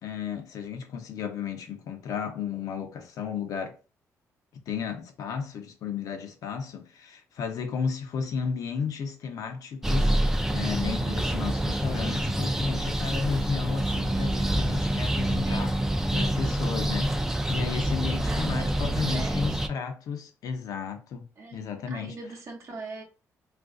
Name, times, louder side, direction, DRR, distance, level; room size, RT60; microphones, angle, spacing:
voice 1, 0.0-3.8 4.7-15.8 16.1-17.1 17.5-22.2, left 6 dB, 75° left, 0.7 m, -33 dB
sound 1, 9.8-19.7, right 1 dB, 5° right, 0.3 m, -27 dB
voice 2, 15.0-17.2 18.0-19.5 21.4-23.0, right 3 dB, 55° right, 0.7 m, -43 dB
2.5 x 2.4 x 3.6 m
cardioid pair, 105°, 6 cm